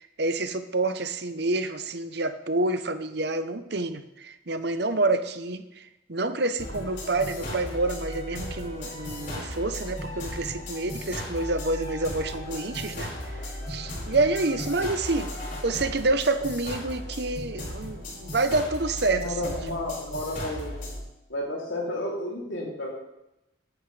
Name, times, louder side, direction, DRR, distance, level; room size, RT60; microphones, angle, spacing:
voice 1, 0.0-13.4 13.7-15.3 15.6-19.8, right 2 dB, 55° right, 10 dB, 0.9 m, -28 dB
sound 1, 6.6-21.0, left 1 dB, 45° left, 5.0 m, -36 dB
voice 2, 19.1-20.7 21.3-22.9, left 1 dB, 75° left, -3 dB, 3.1 m, -32 dB
14.5 x 11.0 x 3.4 m, 0.91 s
head